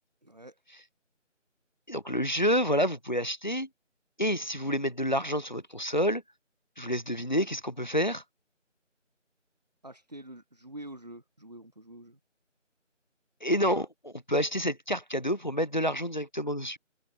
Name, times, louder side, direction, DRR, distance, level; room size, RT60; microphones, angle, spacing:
voice 1, 0.2-0.6 9.8-12.2, right 1 dB, 35° right, 5.0 m, -46 dB
voice 2, 1.9-3.7 4.2-6.2 6.8-8.2 13.4-16.8, equal, 35° left, 1.6 m, -28 dB
figure-of-eight pair, 180°, 38 cm